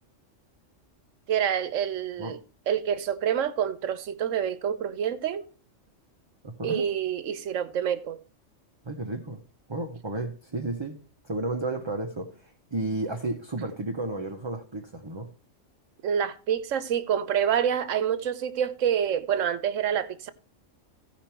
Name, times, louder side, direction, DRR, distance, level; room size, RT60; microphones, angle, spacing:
voice 1, 1.3-2.4 2.7-5.5 6.6-8.2 16.0-20.3, right 9 dB, 80° right, 1.1 m, -27 dB
voice 2, 6.4-6.9 8.8-9.4 9.7-11.0 11.2-15.3, right 2 dB, 25° right, 0.8 m, -32 dB
15.0 x 5.1 x 4.4 m
omnidirectional pair, 1.3 m